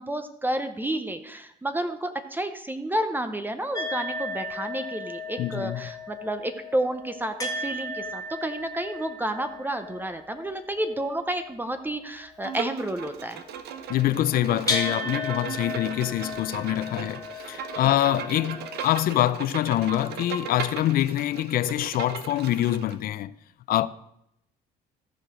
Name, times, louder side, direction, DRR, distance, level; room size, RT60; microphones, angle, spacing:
voice 1, 0.0-13.4 17.8-17.9, right 1 dB, 10° right, 0.7 m, -30 dB
sound 1, 3.7-12.0 13.9-14.0 14.3-19.0, left 2 dB, 20° left, 1.6 m, -35 dB
voice 2, 5.4-5.9 13.9-23.3 23.7-23.9, left 13 dB, 60° left, 0.5 m, -25 dB
Bowed string instrument, 12.4-23.0, right 7 dB, 75° right, 0.9 m, -37 dB
14.0 x 4.9 x 5.0 m
cardioid pair, 110°, 17 cm